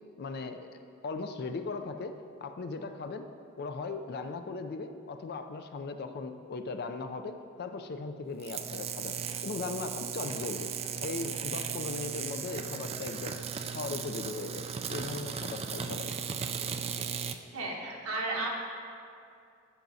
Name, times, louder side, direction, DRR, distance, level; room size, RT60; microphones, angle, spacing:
voice 1, 0.2-0.7 1.0-2.1 2.4-3.2 3.6-9.2 9.4-10.7 11.0-13.4 13.7-16.1, left 3 dB, 45° left, 7 dB, 0.4 m, -38 dB
sound 1, 8.4-17.4, right 7 dB, 25° right, 0.3 m, -36 dB
voice 2, 17.5-18.5, right 2 dB, 70° right, -2 dB, 1.3 m, -33 dB
14.0 x 5.9 x 2.7 m, 2.4 s
head